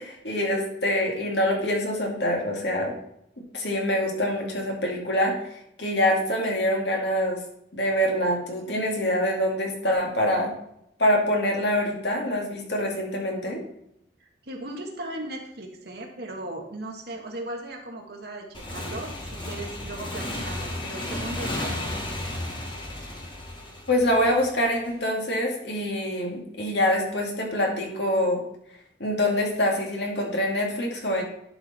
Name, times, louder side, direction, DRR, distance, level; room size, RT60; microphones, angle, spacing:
voice 1, 0.0-2.9 3.4-5.3 5.8-7.4 7.7-10.5 11.0-13.6 23.9-28.4 29.0-31.2, left 1 dB, 60° left, 0 dB, 2.2 m, -25 dB
voice 2, 14.2-22.1, right 1 dB, 55° right, 2 dB, 1.5 m, -37 dB
Motorcycle / Engine, 18.5-24.9, left 1 dB, 25° left, 1.5 m, -33 dB
11.0 x 5.1 x 4.2 m, 0.77 s
head